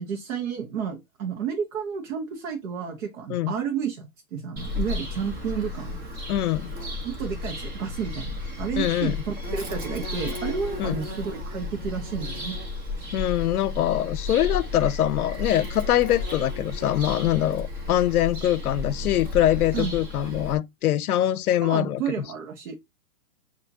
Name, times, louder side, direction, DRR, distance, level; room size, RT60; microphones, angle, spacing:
voice 1, 0.0-6.0 7.0-12.6 19.7-19.9 21.6-22.7, right 7 dB, 60° right, 1.2 m, -31 dB
Bird vocalization bird call bird song, 4.6-20.6, left 2 dB, 20° right, 1.0 m, -33 dB
voice 2, 6.3-6.7 8.8-9.2 10.8-11.0 13.1-22.0, left 12 dB, 90° left, 0.6 m, -23 dB
6.8 x 2.8 x 2.7 m
hypercardioid pair, 145°, 43 cm